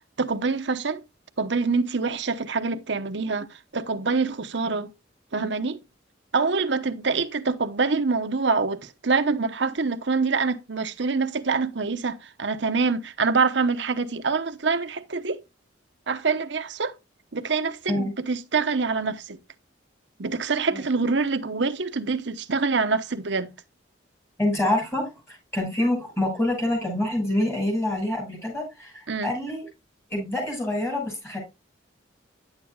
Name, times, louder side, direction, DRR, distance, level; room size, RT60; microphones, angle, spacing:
voice 1, 0.2-1.0 1.4-4.9 5.3-5.8 6.3-15.4 16.1-16.9 17.3-19.4 20.2-23.5 29.1-29.3, right 4 dB, 65° right, 0.9 m, -25 dB
voice 2, 24.4-29.7 30.1-31.4, left 1 dB, 15° left, 6.3 m, -26 dB
10.5 x 8.7 x 2.3 m
head